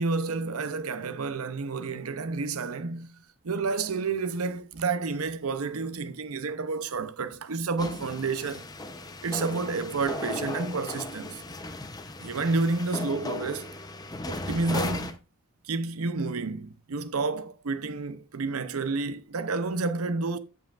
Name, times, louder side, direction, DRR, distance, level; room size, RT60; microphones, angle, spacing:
voice 1, 0.0-8.7 9.2-11.4 12.2-13.7 14.3-15.2 15.6-20.4, right 3 dB, 85° right, 0.7 m, -30 dB
sound 1, 7.8-15.2, left 2 dB, 20° left, 0.7 m, -36 dB
14.5 x 5.6 x 2.4 m
head